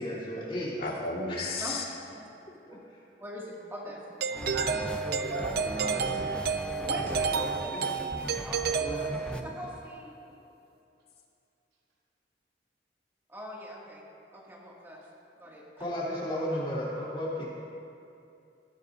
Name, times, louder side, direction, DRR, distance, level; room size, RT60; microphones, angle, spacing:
voice 1, 0.0-0.8 1.3-1.6 2.9-3.0 7.6-8.0 8.8-9.0 15.8-17.5, left 1 dB, 30° left, -7 dB, 3.4 m, -34 dB
voice 2, 0.8-1.8, left 3 dB, 60° left, -2 dB, 2.0 m, -33 dB
voice 3, 1.6-2.3 2.6-2.8 3.2-4.5 6.6-10.1 13.3-14.0 14.3-15.0 15.4-15.9 16.5-16.6, equal, 15° right, -5 dB, 2.3 m, -42 dB
Doorbell, 4.2-9.6, right 6 dB, 60° right, 0.6 m, -31 dB
sound 1, 4.3-9.4, equal, 5° left, 0.4 m, -39 dB
voice 4, 4.3-6.3 7.1-7.5 9.3-9.5, right 1 dB, 80° right, -4 dB, 2.6 m, -37 dB
18.0 x 16.0 x 2.7 m, 2.6 s
head